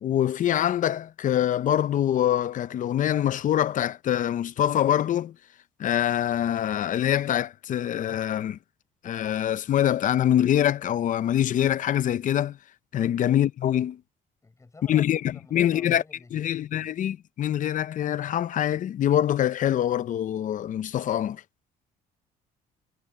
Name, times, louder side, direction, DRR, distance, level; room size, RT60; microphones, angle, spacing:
voice 1, 0.0-5.3 5.8-8.6 9.0-12.6 12.9-14.0 14.9-15.2 15.5-16.0 16.3-21.4, left 11 dB, 50° left, 0.7 m, -24 dB
voice 2, 14.4-16.6, left 3 dB, 20° left, 6.0 m, -50 dB
cardioid pair, 110°, 17 cm